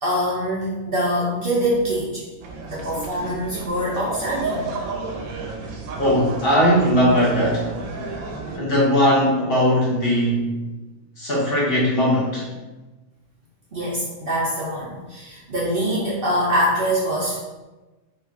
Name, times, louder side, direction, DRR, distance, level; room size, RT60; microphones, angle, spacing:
voice 1, 0.0-2.2 2.7-4.6 13.7-17.4, equal, 55° right, -6 dB, 0.7 m, -24 dB
sound 1, 2.4-8.6, right 3 dB, 85° right, 1.0 m, -32 dB
voice 2, 6.0-7.7 8.6-10.5 11.2-12.4, equal, 55° left, -5 dB, 0.8 m, -19 dB
3.1 x 2.3 x 3.5 m, 1.1 s
omnidirectional pair, 1.4 m